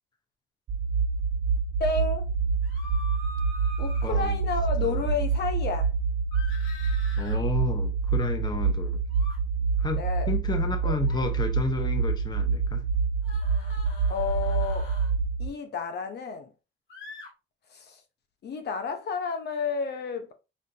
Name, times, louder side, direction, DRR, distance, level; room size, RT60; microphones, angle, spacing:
sound 1, 0.7-15.5, right 5 dB, 50° right, 0.9 m, -27 dB
voice 1, 1.8-2.3 3.8-5.9 10.0-10.3 10.8-11.0 14.1-14.9 15.4-16.5 17.7-18.0 18.4-20.3, left 5 dB, 55° left, 0.8 m, -31 dB
sound 2, 2.6-4.1 6.3-7.4 9.1-9.4 11.0-11.3 13.2-15.1 16.9-17.3, left 2 dB, 70° left, 2.2 m, -44 dB
voice 2, 4.0-4.4 4.8-5.1 7.2-9.0 9.8-12.8, left 3 dB, 20° left, 0.7 m, -32 dB
5.3 x 2.5 x 2.7 m
cardioid pair, 90°, 20 cm